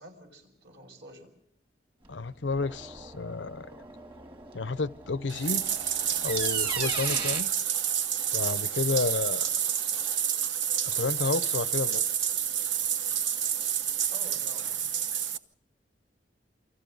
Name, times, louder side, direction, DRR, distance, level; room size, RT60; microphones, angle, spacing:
voice 1, 0.0-1.3 14.1-14.9, equal, 70° right, 6.2 m, -49 dB
sound 1, 2.0-7.4, right 3 dB, 30° right, 1.7 m, -40 dB
voice 2, 2.1-3.8 4.5-5.6 6.2-7.5 8.3-9.5 10.8-12.0, left 3 dB, 80° left, 0.7 m, -31 dB
Bathtub (filling or washing), 5.3-15.4, right 9 dB, 85° right, 1.1 m, -29 dB
29.0 x 25.0 x 4.0 m
head